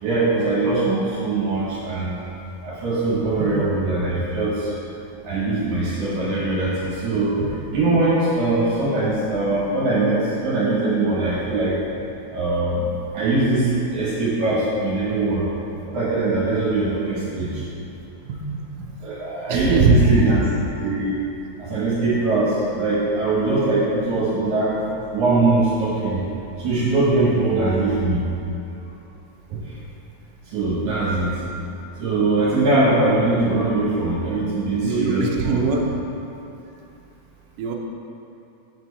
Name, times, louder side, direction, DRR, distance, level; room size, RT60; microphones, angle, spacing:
voice 1, 0.0-2.2 2.6-4.7 5.2-7.5 7.7-11.8 12.3-12.9 13.1-15.5 15.9-17.6 19.0-20.4 20.8-21.2 21.6-24.8 25.1-26.2 26.6-28.2 29.5-29.6 30.5-31.3 32.0-35.6, right 2 dB, 60° right, -8 dB, 2.2 m, -21 dB
voice 2, 3.4-3.7 18.3-18.9 19.5-20.3 34.8-35.9 37.6-37.7, right 3 dB, 85° right, 0 dB, 1.9 m, -21 dB
8.6 x 4.6 x 4.1 m, 2.9 s
omnidirectional pair, 4.7 m